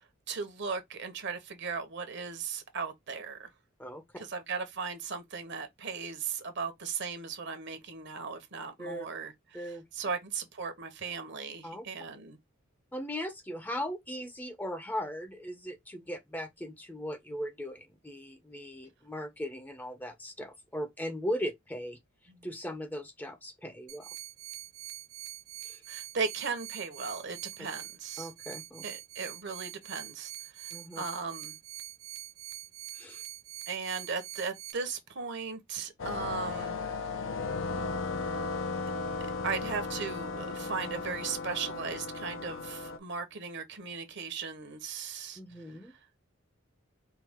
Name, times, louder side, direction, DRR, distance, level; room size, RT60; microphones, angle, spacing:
voice 1, 0.3-3.5 4.2-12.4 22.3-22.5 25.9-28.3 28.8-30.7 31.0-31.6 33.7-36.8 38.2-38.4 39.4-45.4, right 5 dB, 60° right, 1.0 m, -37 dB
voice 2, 3.8-4.2 8.8-9.1 9.5-9.8 11.6-11.8 12.9-22.0 22.4-24.2 25.6-25.8 28.2-28.8 30.7-31.0 32.9-33.2 45.4-45.9, equal, 10° left, 0.6 m, -38 dB
sound 1, 23.9-34.7, right 14 dB, 80° right, 0.6 m, -44 dB
sound 2, 36.0-43.0, left 3 dB, 70° left, 0.6 m, -35 dB
4.6 x 2.4 x 3.5 m
head